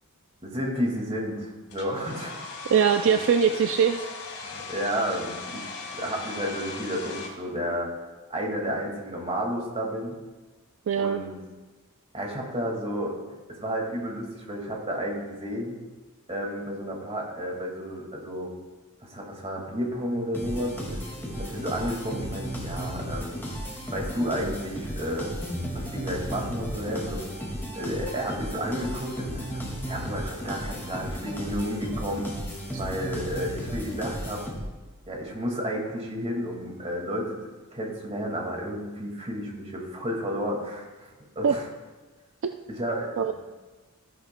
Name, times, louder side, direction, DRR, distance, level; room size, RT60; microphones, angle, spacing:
voice 1, 0.4-2.7 3.5-3.6 4.4-7.9 8.3-10.2 11.0-11.3 12.1-13.2 13.5-15.8 16.3-18.5 19.0-21.0 21.4-23.3 23.9-25.3 25.7-27.2 27.8-29.5 29.9-32.3 32.7-34.4 35.1-37.4 37.7-41.1 41.4-41.7 42.7-43.3, equal, 30° right, 0 dB, 1.9 m, -31 dB
Domestic sounds home sounds, 1.7-7.3, left 4 dB, 75° left, 1.9 m, -39 dB
voice 2, 2.7-4.1 10.9-11.2 41.4-41.6 42.4-42.5 43.2-43.3, right 7 dB, 60° right, 7 dB, 0.4 m, -22 dB
sound 1, 20.3-34.9, equal, 10° left, 1.9 m, -34 dB
13.5 x 11.0 x 2.2 m, 1.3 s
head